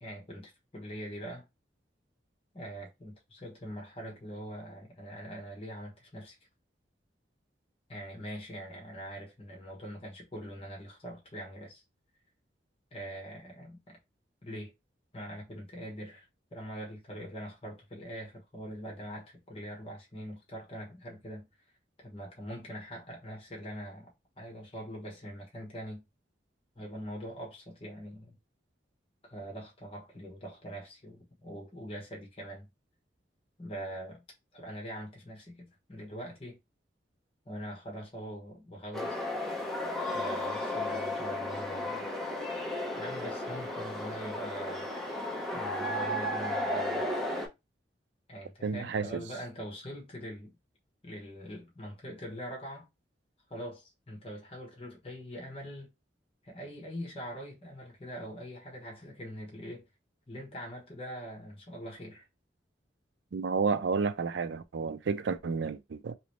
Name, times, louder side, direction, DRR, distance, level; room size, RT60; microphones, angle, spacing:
voice 1, 0.0-1.4 2.5-6.4 7.9-11.8 12.9-14.0 14.4-14.7 15.1-16.3 16.5-21.5 22.0-26.0 26.7-28.4 29.2-32.7 33.6-34.2 34.5-36.6 37.4-39.2 40.1-42.1 43.0-44.9 45.5-47.2 48.3-50.5 51.0-52.9 53.5-55.9 56.4-59.9 60.3-62.3, equal, 30° left, 1.2 m, -43 dB
sound 1, 38.9-47.5, left 1 dB, ahead, 0.8 m, -34 dB
voice 2, 48.6-49.1 63.3-66.1, right 5 dB, 85° right, 0.4 m, -31 dB
3.1 x 3.0 x 3.0 m
head